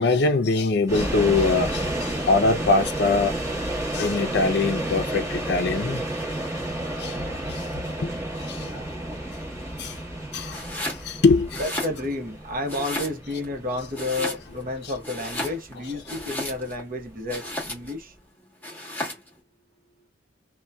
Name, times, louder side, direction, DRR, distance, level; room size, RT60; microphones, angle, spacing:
voice 1, 0.0-3.4 3.9-6.0 7.0-8.1 8.5-8.9 9.8-10.0 10.3-10.6 11.0-11.6, left 3 dB, 60° left, 0.5 m, -23 dB
sound 1, 0.9-17.9, right 1 dB, 15° right, 1.1 m, -31 dB
Domestic sounds home sounds, 10.5-11.1 11.4-12.3 12.7-13.5 13.9-14.7 15.0-16.8 17.3-18.0 18.6-19.3, left 1 dB, 10° left, 1.1 m, -33 dB
voice 2, 11.6-18.1, left 2 dB, 50° right, 0.9 m, -31 dB
2.7 x 2.2 x 2.2 m
head